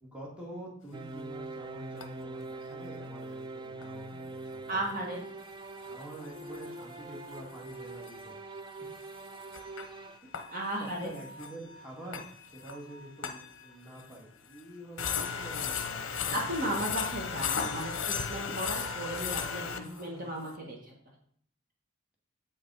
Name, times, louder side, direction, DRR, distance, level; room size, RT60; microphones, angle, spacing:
voice 1, 0.0-5.0 5.8-8.3 8.8-8.9 10.2-10.4 10.7-16.5 19.6-20.4, right 1 dB, 5° right, -5 dB, 2.0 m, -47 dB
sound 1, 0.9-10.2, right 2 dB, 20° right, 0.3 m, -43 dB
sound 2, 1.2-1.3 2.0-2.1 3.8-3.9 5.8-7.0 7.3-7.5 7.7-7.8 8.1-8.2 9.0-14.2 14.5-14.6 15.0-20.0, left 6 dB, 60° left, 0.8 m, -36 dB
voice 2, 4.7-5.2 10.5-11.1 16.3-20.9, right 1 dB, 40° right, -1 dB, 1.7 m, -35 dB
8.1 x 5.5 x 4.8 m, 0.63 s
head